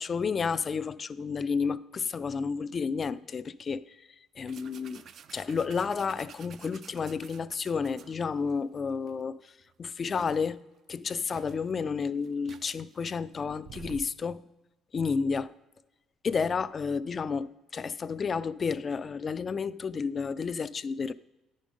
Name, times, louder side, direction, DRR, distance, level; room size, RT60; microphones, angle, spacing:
voice 1, 0.0-4.1 4.4-5.0 5.3-9.5 9.8-10.6 10.9-14.5 14.9-15.5 16.2-21.1, left 5 dB, 35° left, 0.3 m, -31 dB
sound 1, 4.5-8.5 9.1-9.2 9.6-10.5 11.0-11.1 11.3-14.2, right 7 dB, 50° right, 0.4 m, -50 dB
10.5 x 5.2 x 5.2 m
cardioid pair, 120°, 0 cm